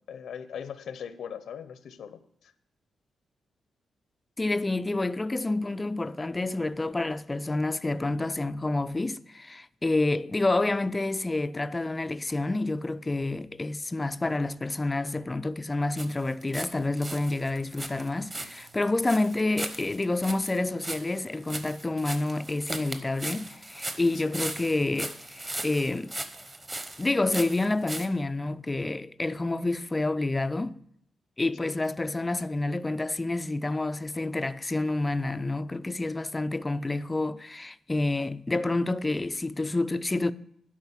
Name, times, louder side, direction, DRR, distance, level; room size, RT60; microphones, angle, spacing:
voice 1, 0.1-2.5 24.2-24.4 31.6-31.8, left 8 dB, 75° left, 0.7 m, -40 dB
voice 2, 4.4-26.1 27.0-30.8 31.4-40.3, left 2 dB, 15° left, 0.3 m, -28 dB
sound 1, 16.0-16.7 17.0-28.1, right 1 dB, 20° right, 0.8 m, -38 dB
12.0 x 4.9 x 7.2 m
wide cardioid pair, 140°, 0 cm